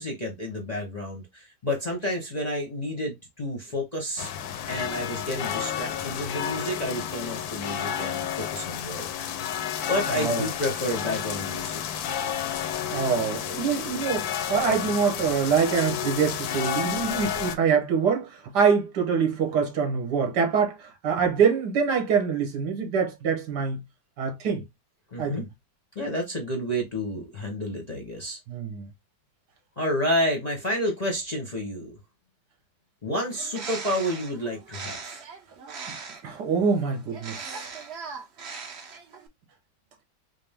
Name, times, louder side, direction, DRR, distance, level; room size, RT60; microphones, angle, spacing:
voice 1, 0.0-4.3 4.7-9.4 9.9-12.0 25.1-25.4 26.0-28.4 29.8-31.9 33.0-35.2, equal, 35° left, 0.7 m, -30 dB
sound 1, 4.2-17.5, left 9 dB, 70° left, 1.0 m, -31 dB
voice 2, 10.1-10.5 12.9-23.8 24.2-24.6 25.2-25.5 28.5-28.9 35.9-36.0 36.2-37.7, right 6 dB, 75° right, 1.6 m, -25 dB
Bird, 33.3-36.4 37.1-39.3, right 5 dB, 50° right, 0.9 m, -39 dB
5.0 x 2.0 x 3.4 m
omnidirectional pair, 1.8 m